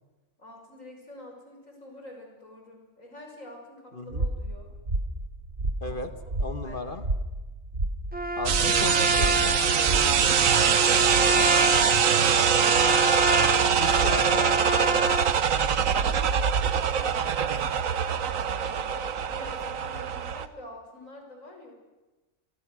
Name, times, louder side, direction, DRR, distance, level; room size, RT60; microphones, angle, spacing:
voice 1, 0.4-4.7 5.8-6.0 6.6-6.8 13.7-16.3 16.7-17.9 18.4-21.7, left 1 dB, 75° left, 2 dB, 6.4 m, -46 dB
voice 2, 3.9-4.2 5.8-6.1 6.4-7.0 8.3-10.7 11.3-11.4 13.8-14.6, left 2 dB, 40° left, 8 dB, 1.6 m, -36 dB
sound 1, 4.1-10.5, right 2 dB, 55° right, 2.2 m, -32 dB
Trumpet, 8.1-15.4, right 1 dB, 10° right, 1.0 m, -27 dB
sound 2, 8.5-20.5, right 7 dB, 80° right, 1.4 m, -23 dB
29.0 x 25.0 x 6.3 m, 1.1 s
omnidirectional pair, 1.4 m